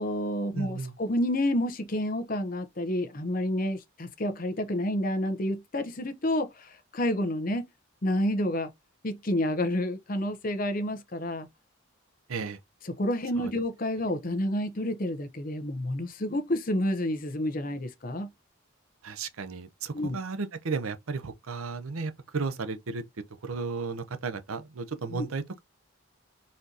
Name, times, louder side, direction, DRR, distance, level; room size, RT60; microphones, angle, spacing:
voice 1, 0.0-7.7 8.0-8.7 9.0-11.5 12.8-18.3 19.9-20.2 25.1-25.3, left 1 dB, 40° left, 0.8 m, -29 dB
voice 2, 0.5-1.0 12.3-12.6 13.4-13.5 19.0-23.0 23.4-25.6, right 4 dB, 85° right, 0.7 m, -34 dB
4.3 x 3.8 x 2.8 m
head